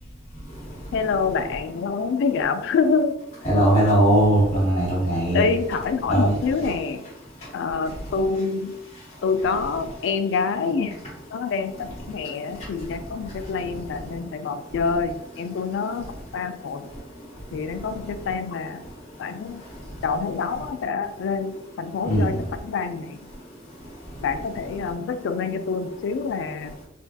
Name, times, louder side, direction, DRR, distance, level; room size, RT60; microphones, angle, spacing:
voice 1, 0.9-3.1 5.3-7.0 7.5-8.8 9.2-11.0 11.3-16.8 17.5-18.8 19.2-19.6 20.0-22.4 22.6-23.2 24.2-26.8, left 5 dB, 65° left, 10 dB, 0.3 m, -26 dB
voice 2, 3.4-5.4 6.1-6.3 22.1-22.3, right 1 dB, 35° left, -10 dB, 0.9 m, -19 dB
3.5 x 2.5 x 2.2 m, 0.86 s
head